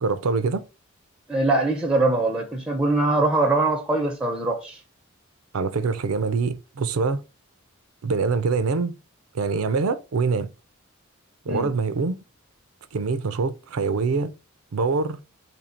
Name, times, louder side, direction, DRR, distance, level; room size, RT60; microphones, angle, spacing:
voice 1, 0.0-0.6 5.5-7.2 8.0-8.9 9.3-10.5 11.5-12.2 12.9-14.3 14.7-15.2, right 4 dB, 90° right, 0.5 m, -24 dB
voice 2, 1.3-4.8 11.5-11.7, right 2 dB, 5° right, 0.5 m, -22 dB
2.8 x 2.6 x 4.3 m
head